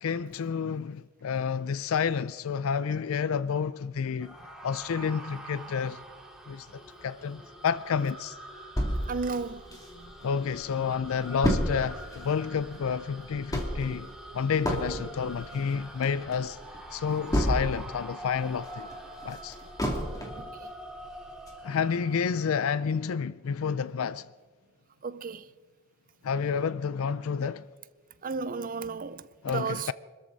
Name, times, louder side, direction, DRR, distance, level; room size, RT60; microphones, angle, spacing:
voice 1, 0.0-4.4 4.6-6.0 6.5-8.4 10.2-14.1 14.3-16.6 16.9-18.9 19.2-19.6 21.6-24.3 26.2-27.7 29.4-29.9, left 6 dB, 70° left, 0.4 m, -30 dB
sound 1, 4.2-22.7, right 1 dB, 5° right, 2.4 m, -45 dB
sound 2, 8.8-10.3 10.7-10.8 11.0-18.0 18.4-20.5 21.0-21.1 21.5-21.6, equal, 15° left, 2.6 m, -31 dB
voice 2, 9.1-9.6 25.0-25.4 28.2-29.9, right 4 dB, 40° right, 0.6 m, -33 dB
25.5 x 13.5 x 4.0 m
head